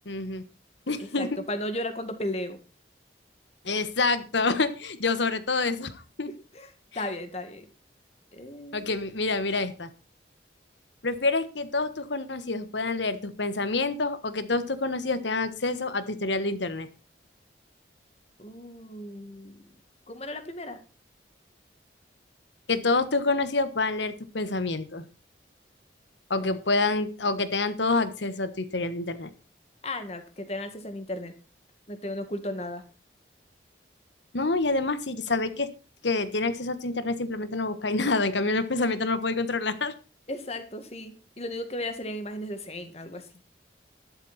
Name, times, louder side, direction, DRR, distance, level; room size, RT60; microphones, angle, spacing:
voice 1, 0.0-0.4 0.9-1.3 3.6-6.3 8.7-9.9 11.0-16.9 22.7-25.0 26.3-29.3 34.3-35.7 36.0-39.9, left 3 dB, 75° left, 13 dB, 1.4 m, -27 dB
voice 2, 1.0-2.6 6.5-7.7 8.3-8.9 18.4-19.7 20.1-20.8 26.3-26.6 29.8-31.3 31.9-32.8 40.3-43.3, left 1 dB, 35° left, 9 dB, 1.9 m, -35 dB
12.5 x 11.5 x 4.3 m, 0.32 s
head